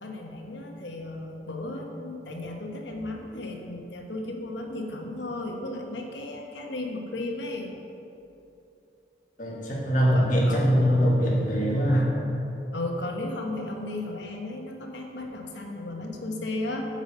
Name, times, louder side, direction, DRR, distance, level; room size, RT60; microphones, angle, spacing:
voice 1, 0.0-7.7 10.1-10.9 11.9-12.1 12.7-16.9, left 2 dB, 80° left, 1 dB, 1.2 m, -35 dB
voice 2, 9.4-12.1, equal, 45° left, -4 dB, 1.8 m, -22 dB
8.9 x 5.2 x 6.6 m, 2.8 s
head